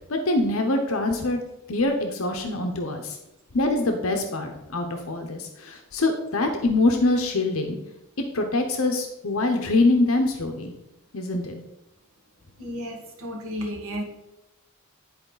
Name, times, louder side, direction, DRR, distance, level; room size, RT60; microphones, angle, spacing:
voice 1, 0.1-1.4 1.7-3.2 3.5-7.8 8.3-10.7 11.1-11.5, left 2 dB, 75° left, 4 dB, 0.8 m, -24 dB
voice 2, 12.6-14.0, equal, 80° right, 0 dB, 1.7 m, -33 dB
10.5 x 4.5 x 3.9 m, 0.90 s
head